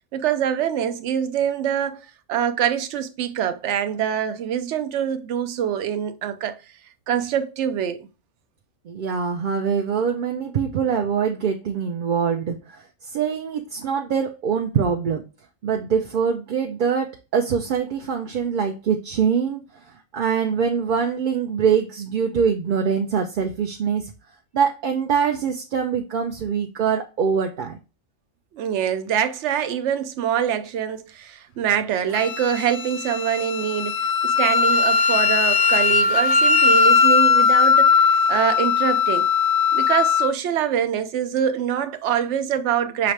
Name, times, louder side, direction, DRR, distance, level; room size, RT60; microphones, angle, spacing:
voice 1, 0.1-6.6 7.1-8.1 28.5-39.3 39.7-43.1, right 9 dB, 85° right, 0.9 m, -24 dB
voice 2, 8.9-15.2 15.6-24.1 24.5-27.8, right 6 dB, 55° right, 0.6 m, -24 dB
Wind instrument woodwind instrument, 32.1-40.3, left 5 dB, 60° left, 0.6 m, -19 dB
5.8 x 2.8 x 3.2 m
omnidirectional pair, 1.2 m